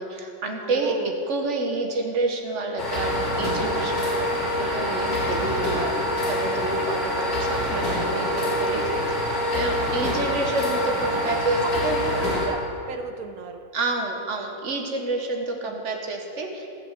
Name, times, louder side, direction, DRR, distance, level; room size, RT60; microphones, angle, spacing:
voice 1, 0.0-6.0 6.3-12.0 13.7-16.7, right 2 dB, 45° right, 2 dB, 1.4 m, -29 dB
voice 2, 0.7-1.1 9.8-10.4 11.1-11.3 11.6-12.6 12.9-13.6 15.6-15.7, right 7 dB, 70° right, 7 dB, 0.8 m, -35 dB
sound 1, 2.8-12.5, left 1 dB, 50° left, 2.4 m, -25 dB
15.0 x 6.1 x 7.6 m, 2.6 s
omnidirectional pair, 2.1 m